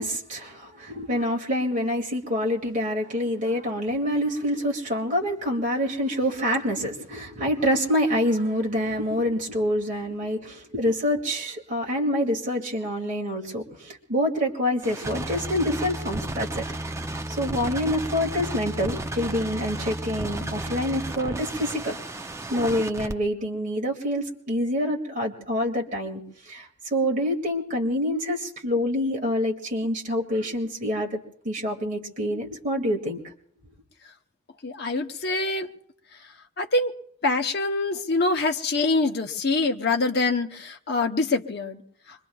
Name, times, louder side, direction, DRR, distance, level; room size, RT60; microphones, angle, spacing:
voice 1, 0.0-16.6 17.4-22.0 22.5-31.2 31.4-33.2, equal, 40° right, 0 dB, 2.2 m, -26 dB
sound 1, 14.8-23.1, right 1 dB, 15° right, 0.5 m, -33 dB
voice 2, 34.6-35.7 36.6-36.9 37.2-41.8, left 3 dB, 55° left, 5 dB, 0.8 m, -25 dB
25.5 x 22.5 x 2.3 m, 0.64 s
head